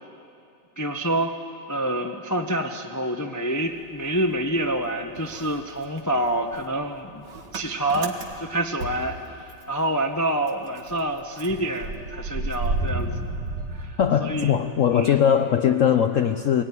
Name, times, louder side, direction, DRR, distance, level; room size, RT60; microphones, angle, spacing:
voice 1, 0.8-1.3 1.7-7.2 7.5-13.1 13.7-14.6 14.9-15.1, right 1 dB, 25° left, 4 dB, 0.3 m, -27 dB
Motor vehicle (road) / Engine starting, 3.6-4.9 5.2-9.8 10.1-10.2 10.5-14.6, right 2 dB, 60° right, 2.2 m, -33 dB
voice 2, 14.0-16.6, left 8 dB, 80° left, 7 dB, 0.7 m, -20 dB
23.0 x 18.5 x 9.7 m, 2.6 s
omnidirectional pair, 2.2 m